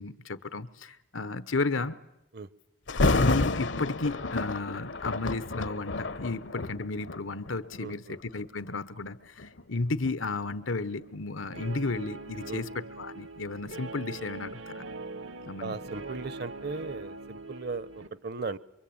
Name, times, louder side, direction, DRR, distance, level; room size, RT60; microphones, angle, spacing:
voice 1, 0.0-2.0 3.1-14.8 15.5-15.8, left 3 dB, 85° left, 1.2 m, -33 dB
Thunder, 2.9-7.9 8.5-8.7 9.4-12.2 12.5-12.6, left 3 dB, 70° left, 1.0 m, -30 dB
voice 2, 7.8-8.2 12.5-12.6 15.6-18.6, right 4 dB, 55° right, 1.0 m, -37 dB
Guitar, 11.5-18.1, right 2 dB, 85° right, 1.8 m, -42 dB
26.5 x 24.0 x 8.8 m
head